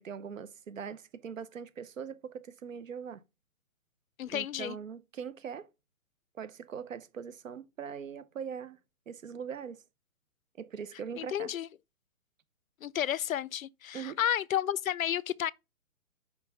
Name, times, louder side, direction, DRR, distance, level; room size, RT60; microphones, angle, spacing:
voice 1, 0.0-3.2 4.3-5.7 6.4-8.8 9.1-9.8 10.6-11.5 13.9-14.2, right 7 dB, 65° right, 1.1 m, -41 dB
voice 2, 4.2-4.8 11.2-11.7 12.8-15.5, left 10 dB, 75° left, 0.6 m, -31 dB
5.8 x 4.8 x 5.7 m
hypercardioid pair, 155°, 41 cm